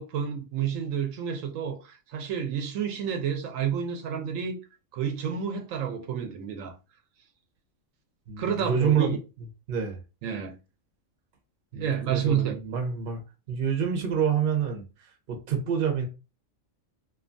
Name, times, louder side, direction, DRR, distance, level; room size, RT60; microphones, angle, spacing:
voice 1, 0.0-4.6 4.9-6.7 8.4-9.2 10.2-10.5 11.7-12.5, right 8 dB, 80° right, 1.0 m, -30 dB
voice 2, 8.3-9.1 9.7-10.0 11.7-13.2 13.5-16.1, right 7 dB, 55° right, 0.8 m, -27 dB
2.7 x 2.2 x 2.5 m
omnidirectional pair, 1.3 m